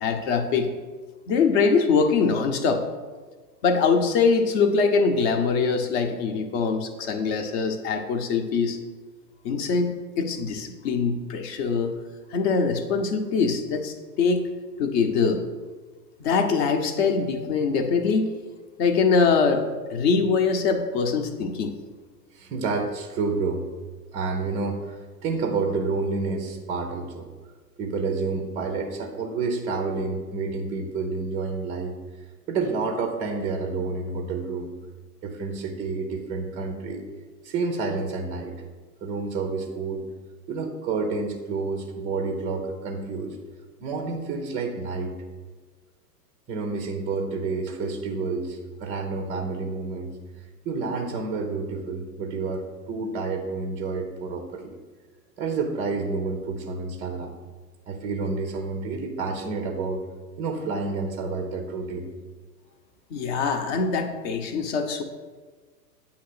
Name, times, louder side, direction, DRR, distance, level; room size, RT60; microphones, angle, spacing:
voice 1, 0.0-0.7 1.3-2.8 3.6-8.8 9.4-11.9 12.3-14.5 14.8-15.4 16.2-18.3 18.8-19.6 19.9-21.7 63.1-65.0, left 5 dB, 40° left, 6 dB, 0.8 m, -23 dB
voice 2, 22.3-23.6 24.1-27.3 27.8-31.9 32.5-34.7 35.2-37.0 37.4-38.5 39.0-40.0 40.5-43.4 43.8-45.2 46.5-50.2 50.6-54.7 55.4-57.3 57.9-60.0 60.4-62.1, right 4 dB, 15° right, 3 dB, 0.5 m, -29 dB
8.2 x 2.9 x 6.0 m, 1.4 s
hypercardioid pair, 110°, 49 cm